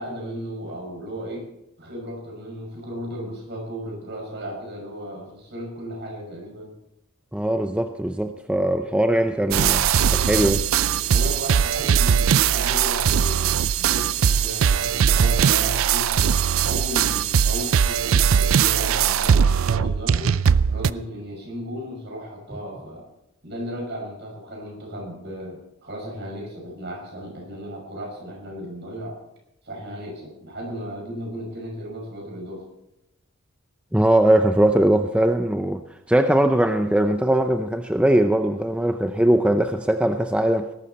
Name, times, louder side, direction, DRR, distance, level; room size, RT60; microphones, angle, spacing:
voice 1, 0.0-1.5 1.8-6.7 10.9-16.1 16.6-20.4 20.7-23.1 23.4-29.2 29.6-32.7, equal, 55° right, 6.1 m, -35 dB
voice 2, 7.3-10.7 33.9-35.8 36.1-40.7, right 1 dB, 5° right, 0.5 m, -20 dB
sound 1, 9.5-20.9, right 7 dB, 70° right, 0.4 m, -20 dB
19.5 x 12.0 x 4.2 m
head